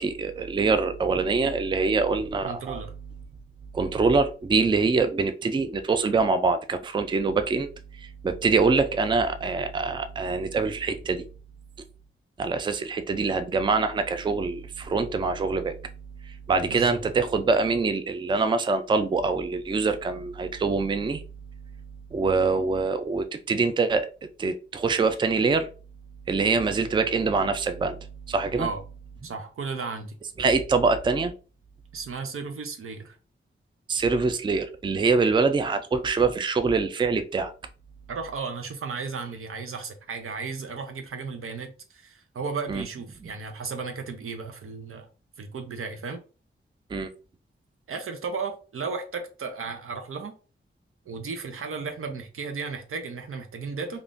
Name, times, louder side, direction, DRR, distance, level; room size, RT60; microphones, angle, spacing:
voice 1, 0.0-2.8 3.7-7.7 7.9-11.2 12.4-15.8 16.5-21.2 22.1-24.1 24.4-25.7 26.3-28.0 28.3-28.7 30.4-31.3 33.9-37.5 42.7-42.8 46.9-47.1, right 4 dB, 20° right, 0.3 m, -24 dB
voice 2, 2.4-2.9 16.7-17.0 28.6-28.8 29.2-30.2 31.9-33.2 38.1-45.1 45.4-46.2 47.9-50.3 51.1-54.0, right 4 dB, 85° right, 0.6 m, -34 dB
3.5 x 2.4 x 2.5 m
wide cardioid pair, 100°, 21 cm